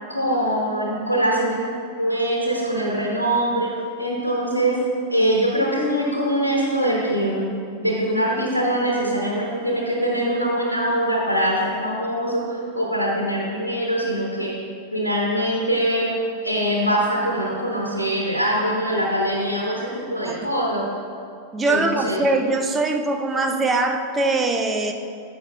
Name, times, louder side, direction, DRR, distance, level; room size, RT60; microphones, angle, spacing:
voice 1, 0.1-1.7 2.0-4.8 5.1-14.6 14.9-16.2 16.4-20.9 21.7-22.2, right 1 dB, 85° left, -3 dB, 1.0 m, -23 dB
voice 2, 21.5-24.9, right 2 dB, 15° right, 4 dB, 0.6 m, -22 dB
12.0 x 7.6 x 2.3 m, 2.5 s
figure-of-eight pair, 90°, 0 cm